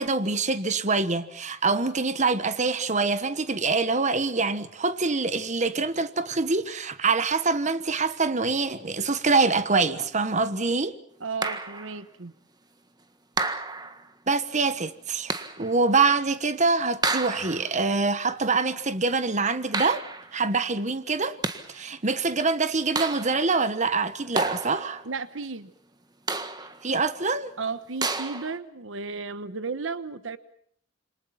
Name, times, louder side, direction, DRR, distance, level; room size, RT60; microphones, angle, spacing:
voice 1, 0.0-11.0 14.3-20.0 20.3-21.4 21.7-25.0 26.8-27.5, right 4 dB, 40° right, 1.3 m, -25 dB
voice 2, 11.2-12.3 25.0-25.7 27.6-30.4, right 4 dB, 80° right, 1.1 m, -34 dB
sound 1, 11.4-12.0 13.4-14.1 15.3-15.7 17.0-17.8 19.7-20.4 21.2-21.8 23.0-23.6 24.3-25.1 26.3-26.9 28.0-28.6, right 3 dB, 20° right, 1.6 m, -30 dB
27.5 x 25.5 x 5.8 m
head